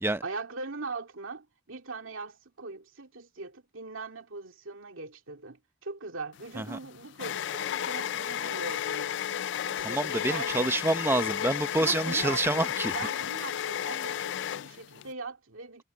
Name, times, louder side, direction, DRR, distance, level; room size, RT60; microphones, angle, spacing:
voice 1, 0.2-9.1 9.6-10.8 11.8-15.8, right 3 dB, 80° right, 2.2 m, -40 dB
sound 1, 6.4-15.1, left 10 dB, 60° left, 0.3 m, -33 dB
voice 2, 9.8-12.9, right 2 dB, 10° right, 0.7 m, -27 dB
head